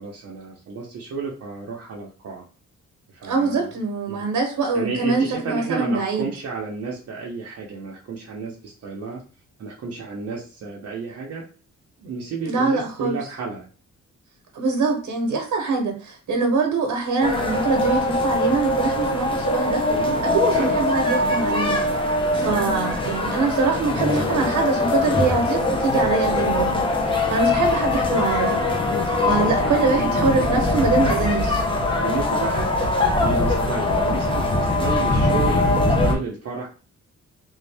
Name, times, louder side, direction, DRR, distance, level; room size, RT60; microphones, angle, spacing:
voice 1, 0.0-2.4 3.1-3.7 4.1-4.2 4.7-9.2 9.6-11.5 12.0-13.6 19.9-20.2 20.5-20.8 29.1-30.5 31.2-31.4 32.0-36.7, right 5 dB, 55° right, -3 dB, 0.7 m, -32 dB
voice 2, 3.3-6.3 12.5-13.2 14.5-19.8 20.2-21.8 22.3-28.5 29.2-31.6, right 4 dB, 85° right, 2 dB, 1.0 m, -23 dB
sound 1, 17.2-36.1, left 2 dB, 15° left, 0.6 m, -22 dB
3.6 x 2.7 x 3.3 m, 0.37 s
wide cardioid pair, 170°, 30 cm